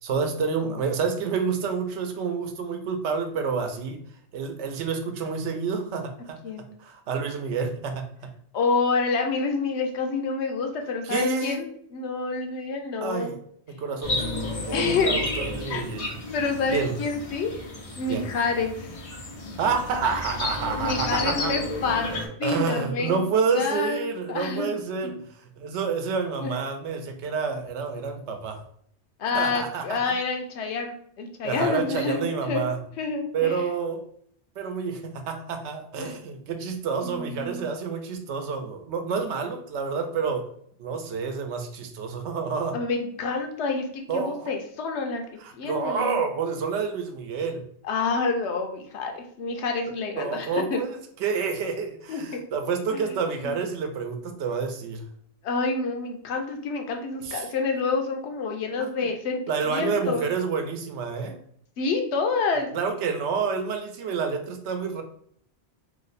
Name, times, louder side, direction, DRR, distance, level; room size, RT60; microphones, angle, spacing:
voice 1, 0.0-4.0 4.3-6.4 6.8-8.3 11.0-11.6 13.0-13.4 13.7-16.2 16.7-16.9 18.1-18.3 19.6-21.5 22.4-25.1 25.4-28.6 29.3-30.0 31.4-32.8 33.3-34.0 34.6-40.5 40.8-42.8 44.1-44.5 45.4-47.6 50.2-55.1 57.2-57.5 58.8-58.9 59.5-61.4 62.7-65.0, right 5 dB, 90° right, 6 dB, 0.9 m, -28 dB
voice 2, 8.5-13.3 14.7-15.2 15.7-15.9 16.3-17.6 18.0-19.0 20.7-23.2 23.5-24.0 24.3-24.7 25.0-25.2 26.4-26.6 29.2-32.7 33.0-33.6 36.0-36.2 37.0-37.7 42.7-45.2 45.5-46.2 47.8-50.8 52.1-52.4 52.9-53.2 55.4-60.2 61.8-62.7, left 4 dB, 85° left, 4 dB, 0.9 m, -28 dB
sound 1, 14.0-22.3, left 2 dB, 45° left, 0.5 m, -32 dB
2.9 x 2.1 x 3.9 m, 0.63 s
omnidirectional pair, 1.1 m